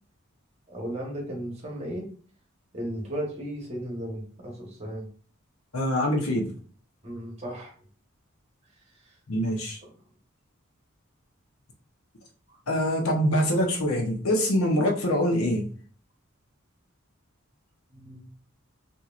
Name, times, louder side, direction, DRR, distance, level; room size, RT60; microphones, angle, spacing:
voice 1, 0.7-2.1 2.7-5.0 7.0-7.7 9.0-9.2 12.5-12.6 17.9-18.3, equal, 30° right, -1 dB, 1.1 m, -35 dB
voice 2, 5.7-6.5 9.3-9.8 12.7-15.7, equal, 85° left, 1 dB, 0.9 m, -24 dB
4.3 x 2.7 x 2.5 m, 0.43 s
head